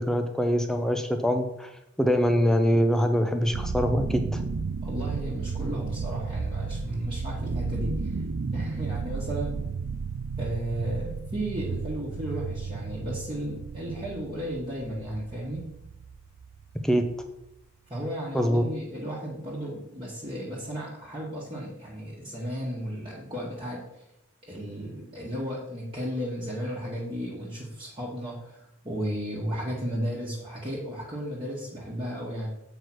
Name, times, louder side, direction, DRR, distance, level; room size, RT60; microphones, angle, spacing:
voice 1, 0.0-1.7 2.0-4.4 16.8-17.0 18.3-18.6, equal, ahead, 6 dB, 0.6 m, -24 dB
sound 1, 3.5-17.5, right 4 dB, 65° right, 0.4 m, -33 dB
voice 2, 4.8-8.2 8.5-9.6 10.4-15.7 17.9-24.0 24.4-32.5, equal, 25° right, -6 dB, 1.4 m, -34 dB
7.9 x 4.8 x 6.1 m, 0.83 s
head